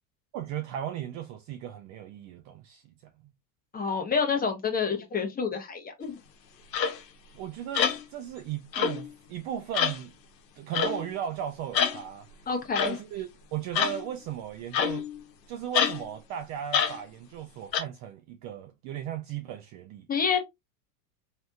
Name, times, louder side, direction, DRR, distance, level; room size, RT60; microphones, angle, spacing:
voice 1, 0.3-2.9 3.2-3.3 7.3-10.1 10.6-12.3 12.8-15.1 15.5-20.1, right 10 dB, 40° right, 0.4 m, -36 dB
voice 2, 3.7-6.2 12.5-13.0 20.1-20.4, left 6 dB, 20° left, 0.8 m, -28 dB
sound 1, 6.7-7.0 7.7-8.0 8.7-9.1 9.7-10.0 10.7-11.0 11.7-12.0 12.7-13.0 13.7-14.0 14.7-15.2 15.7-16.0 16.7-17.0 17.7-17.8, left 8 dB, 90° left, 0.8 m, -26 dB
3.3 x 2.8 x 2.3 m
hypercardioid pair, 100°, 49 cm